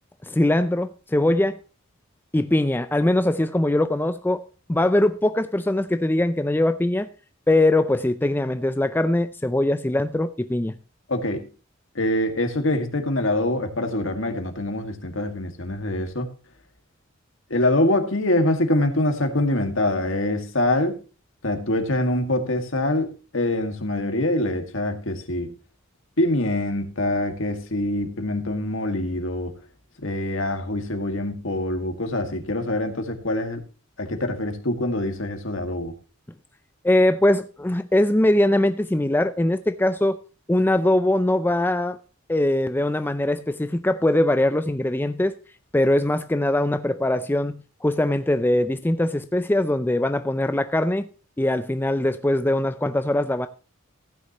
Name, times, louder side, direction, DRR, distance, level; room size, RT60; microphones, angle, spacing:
voice 1, 0.2-1.6 2.3-7.1 7.5-10.8 36.8-40.2 40.5-42.0 42.3-45.3 45.7-47.5 47.8-51.1 51.4-53.5, left 1 dB, 10° left, 0.5 m, -21 dB
voice 2, 11.1-11.5 12.0-16.3 17.5-21.0 21.4-25.5 26.2-29.5 30.0-33.6 34.0-35.9, left 1 dB, 65° left, 2.0 m, -24 dB
15.5 x 9.8 x 3.0 m
head